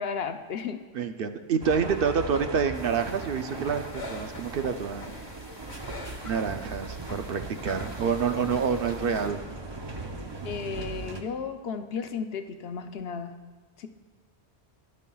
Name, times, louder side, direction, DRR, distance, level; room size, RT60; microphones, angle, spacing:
voice 1, 0.0-0.8 10.4-13.4 13.8-13.9, left 6 dB, 65° left, 7 dB, 0.9 m, -34 dB
voice 2, 0.9-5.1 6.2-9.4, right 6 dB, 60° right, 8 dB, 0.7 m, -28 dB
sound 1, 1.6-11.2, right 3 dB, 30° right, 0.6 m, -38 dB
sound 2, 2.7-9.3, left 2 dB, 30° left, 1.1 m, -44 dB
18.0 x 10.5 x 2.3 m, 1.4 s
omnidirectional pair, 1.1 m